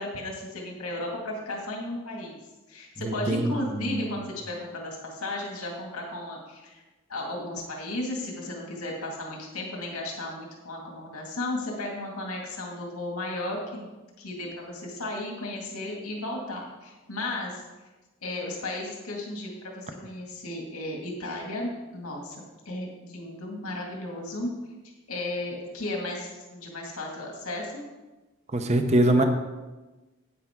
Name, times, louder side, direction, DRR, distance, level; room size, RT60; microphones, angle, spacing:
voice 1, 0.0-2.4 2.7-6.8 7.1-13.9 14.2-17.6 18.2-24.5 25.1-27.8 29.2-29.3, left 2 dB, 90° left, -1 dB, 2.1 m, -34 dB
voice 2, 3.0-4.1 28.5-29.2, right 1 dB, 30° right, 6 dB, 0.7 m, -23 dB
10.0 x 9.1 x 3.7 m, 1.2 s
head